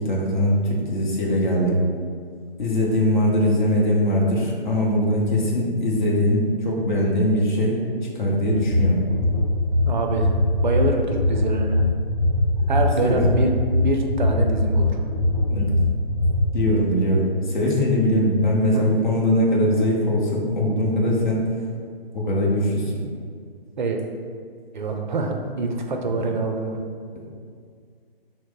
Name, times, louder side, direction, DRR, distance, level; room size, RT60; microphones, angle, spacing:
voice 1, 0.0-1.8 2.6-7.8 8.1-9.0 13.0-13.2 15.5-15.7 16.5-21.4 22.1-23.0 26.1-26.3, left 1 dB, 50° left, -3 dB, 0.7 m, -21 dB
sound 1, 8.5-16.4, left 1 dB, 5° right, 0.7 m, -21 dB
voice 2, 9.9-10.4 10.6-11.8 12.7-15.0 18.6-18.9 23.8-24.0 24.7-26.8, right 3 dB, 50° right, 3 dB, 0.4 m, -25 dB
3.0 x 2.0 x 3.9 m, 2.2 s
figure-of-eight pair, 140°, 30 cm